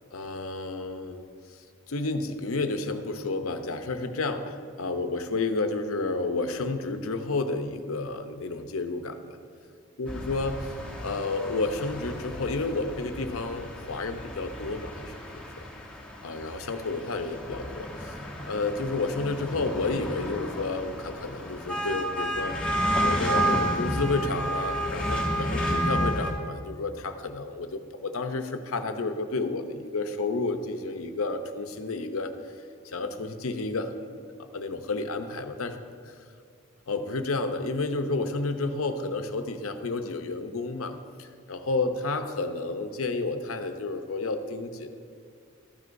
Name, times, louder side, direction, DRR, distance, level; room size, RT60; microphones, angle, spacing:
voice 1, 0.1-1.2 1.5-9.4 10.0-10.7 11.0-15.1 16.2-18.1 18.4-22.5 23.0-32.3 32.8-35.8 36.0-36.1 36.9-44.9, left 3 dB, 85° left, 7 dB, 0.7 m, -31 dB
sound 1, 10.1-26.3, equal, 5° left, 1.0 m, -31 dB
13.0 x 9.4 x 2.6 m, 2.2 s
head